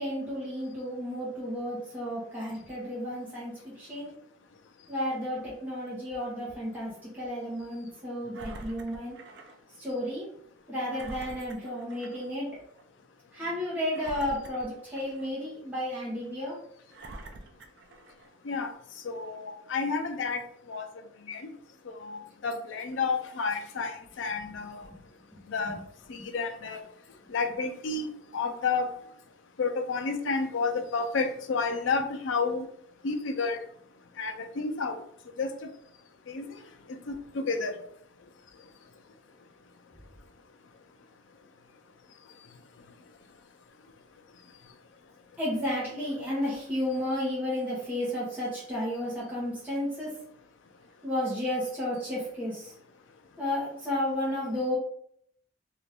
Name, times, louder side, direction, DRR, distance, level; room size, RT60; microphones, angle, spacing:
voice 1, 0.0-4.1 4.9-9.2 9.8-10.3 10.7-12.5 13.3-16.6 25.3-25.7 45.4-50.1 51.0-52.7 53.4-54.8, left 1 dB, 10° right, -8 dB, 0.9 m, -32 dB
Engine, 8.3-9.6 10.0-10.1 10.9-12.3 12.7-12.8 13.9-15.4 16.0-16.1 16.9-18.4 19.0-19.1, right 2 dB, 55° right, 0.4 m, -46 dB
voice 2, 19.0-20.4 20.7-20.9 21.3-21.5 21.9-24.8 25.5-25.8 26.1-26.8 27.3-28.9 29.6-32.7 33.0-33.6 34.2-35.0 35.4-35.5 36.3-36.5 37.1-37.7, left 4 dB, 65° left, 7 dB, 0.4 m, -30 dB
2.8 x 2.5 x 3.3 m, 0.67 s
head